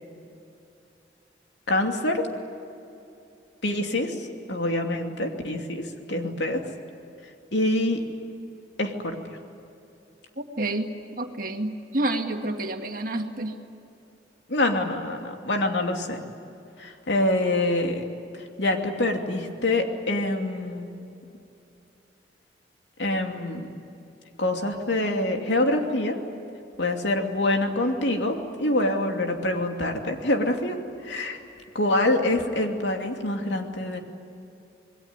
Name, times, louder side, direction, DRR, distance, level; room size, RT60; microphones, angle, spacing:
voice 1, 1.7-2.2 3.6-6.6 7.5-8.0 8.8-9.2 14.5-16.2 16.8-18.0 18.6-21.0 23.0-23.7 24.4-26.2 26.8-30.8 31.0-31.4 31.7-34.0, left 1 dB, 80° left, 3 dB, 2.7 m, -25 dB
voice 2, 10.4-10.9 11.2-13.5, right 2 dB, 50° right, 4 dB, 2.1 m, -29 dB
27.0 x 21.0 x 9.7 m, 2.8 s
head